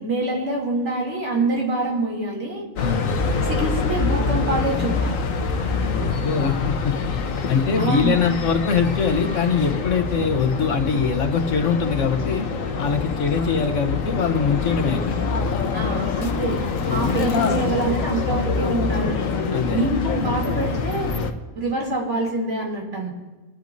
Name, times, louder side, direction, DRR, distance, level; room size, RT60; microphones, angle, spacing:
voice 1, 0.0-2.6 3.4-5.2 7.8-8.1 15.7-16.6 16.9-19.3 19.7-21.2 21.5-23.1, right 2 dB, 65° right, -2 dB, 3.2 m, -25 dB
sound 1, 2.8-21.3, left 4 dB, 90° left, 1.3 m, -25 dB
voice 2, 5.7-7.0 7.5-12.5 12.8-15.2 19.5-19.8, left 5 dB, 70° left, 6 dB, 1.4 m, -23 dB
24.0 x 11.5 x 2.7 m, 1.2 s
omnidirectional pair, 1.3 m